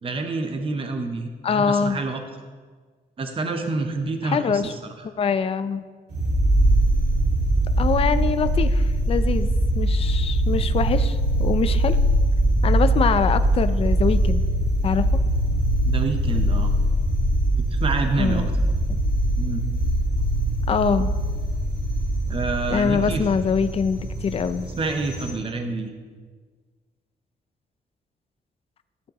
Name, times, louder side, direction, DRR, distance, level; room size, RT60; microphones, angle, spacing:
voice 1, 0.0-2.2 3.2-4.6 15.8-16.7 17.6-18.5 19.4-19.6 22.3-23.2 24.8-25.9, right 3 dB, 35° right, 5 dB, 0.8 m, -27 dB
voice 2, 1.4-2.0 4.2-4.7 5.0-5.9 7.8-9.5 9.8-12.0 12.6-14.4 14.8-15.1 18.2-18.5 18.9-19.0 20.7-21.1 22.7-24.7, left 6 dB, 35° left, 11 dB, 0.4 m, -24 dB
sound 1, 6.1-25.3, right 1 dB, 80° right, 3.0 m, -22 dB
13.5 x 7.5 x 3.0 m, 1.5 s
cardioid pair, 115°, 16 cm